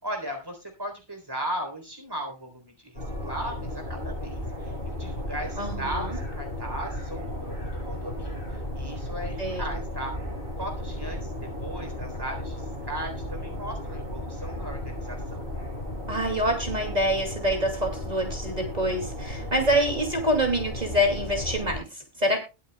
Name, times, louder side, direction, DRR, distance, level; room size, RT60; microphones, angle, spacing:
voice 1, 0.0-10.1 10.6-15.4 19.4-19.8, right 1 dB, 20° right, 3 dB, 3.8 m, -37 dB
sound 1, 2.9-21.8, left 1 dB, 40° left, 8.1 m, -34 dB
voice 2, 5.6-6.2 9.4-9.8 16.1-22.4, equal, 35° right, 3 dB, 2.7 m, -26 dB
21.5 x 7.8 x 2.3 m, 0.27 s
omnidirectional pair, 1.2 m